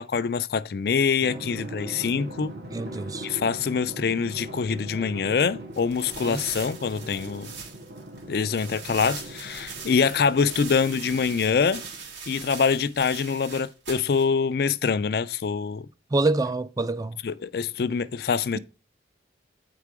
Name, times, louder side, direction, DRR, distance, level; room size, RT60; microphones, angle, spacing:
voice 1, 0.0-2.5 3.2-7.5 8.3-11.8 12.3-15.9 17.2-18.6, left 5 dB, 55° left, 0.4 m, -25 dB
Drum, 1.2-12.2, right 1 dB, 55° right, 2.1 m, -41 dB
voice 2, 2.7-3.3 6.2-6.4 16.1-17.1, right 2 dB, 20° right, 0.4 m, -26 dB
sound 1, 5.7-14.2, right 5 dB, 80° right, 3.1 m, -41 dB
8.9 x 4.7 x 4.7 m
head